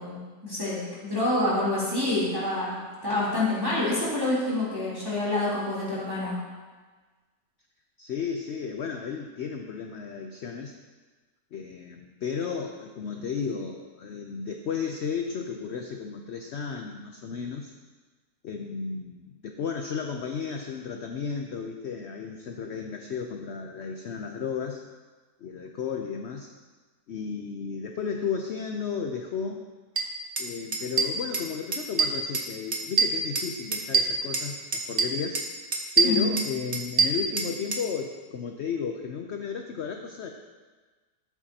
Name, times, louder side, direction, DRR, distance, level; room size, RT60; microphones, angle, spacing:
voice 1, 0.0-6.4 36.0-36.3, left 2 dB, 15° right, -8 dB, 3.1 m, -27 dB
voice 2, 8.0-10.8 11.5-17.7 18.4-24.8 25.4-26.5 27.1-29.6 30.4-35.4 36.0-40.3, left 6 dB, 65° left, 4 dB, 0.7 m, -33 dB
sound 1, 30.0-30.1 30.4-30.5 30.7-31.5 31.7-32.5 32.7-34.5 34.7-35.5 35.7-37.8, right 4 dB, 40° right, 1.1 m, -24 dB
15.5 x 8.3 x 2.8 m, 1.4 s
omnidirectional pair, 1.8 m